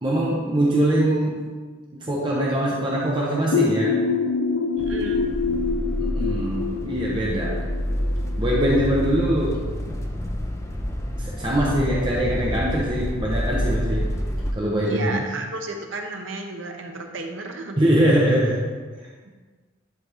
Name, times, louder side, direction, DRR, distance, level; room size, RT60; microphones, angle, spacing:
voice 1, 0.0-1.4 2.0-3.9 6.0-7.6 8.4-9.6 11.2-14.0 14.5-15.3 17.8-18.6, right 1 dB, 25° right, -5 dB, 0.9 m, -22 dB
sound 1, 3.5-9.1, left 4 dB, 70° left, 0.5 m, -26 dB
sound 2, 4.8-14.5, equal, 15° left, 0.5 m, -28 dB
voice 2, 4.8-5.2 14.8-17.8 19.3-19.4, right 2 dB, 65° right, 3 dB, 0.9 m, -33 dB
11.0 x 4.2 x 3.5 m, 1.5 s
head